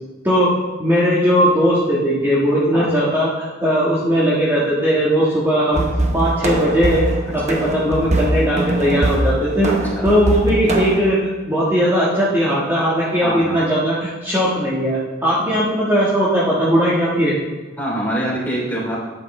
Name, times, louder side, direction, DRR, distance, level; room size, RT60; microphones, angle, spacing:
voice 1, 0.8-5.8 6.1-7.0 7.3-9.7 10.0-17.4, equal, 10° right, -8 dB, 1.6 m, -18 dB
sound 1, 5.7-11.0, right 1 dB, 35° right, 1.0 m, -22 dB
voice 2, 9.6-10.1 13.2-13.6 15.4-15.6 17.8-19.0, right 1 dB, 10° left, -6 dB, 3.0 m, -25 dB
12.0 x 8.7 x 3.2 m, 1.2 s
head